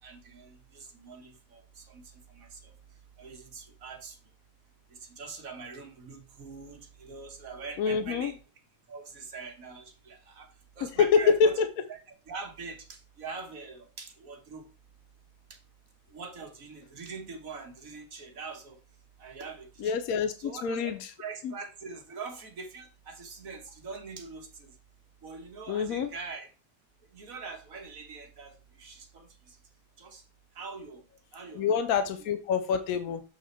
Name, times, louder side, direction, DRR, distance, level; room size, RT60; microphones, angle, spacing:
voice 1, 0.0-2.8 3.2-4.2 4.9-8.4 8.9-11.6 11.9-14.7 15.5-15.6 16.1-18.8 19.2-20.0 20.4-20.9 21.2-24.7 25.2-26.5 27.1-29.6 30.0-30.2 30.5-31.0 31.3-31.7, right 4 dB, 70° right, 2 dB, 1.8 m, -43 dB
voice 2, 7.8-8.3 11.0-11.7 19.8-21.0 21.4-21.5 25.7-26.1 31.6-33.2, left 6 dB, 80° left, 8 dB, 1.1 m, -26 dB
7.2 x 4.1 x 4.3 m, 0.35 s
omnidirectional pair, 1.5 m